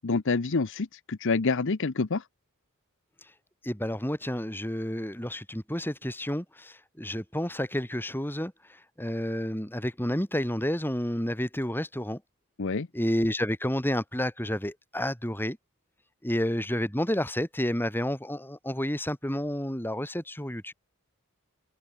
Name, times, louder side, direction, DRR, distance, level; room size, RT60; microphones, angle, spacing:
voice 1, 0.0-2.2 12.6-12.9, left 4 dB, 55° left, 0.7 m, -27 dB
voice 2, 3.6-12.2 12.9-15.6 16.2-20.7, equal, 10° left, 4.0 m, -30 dB
head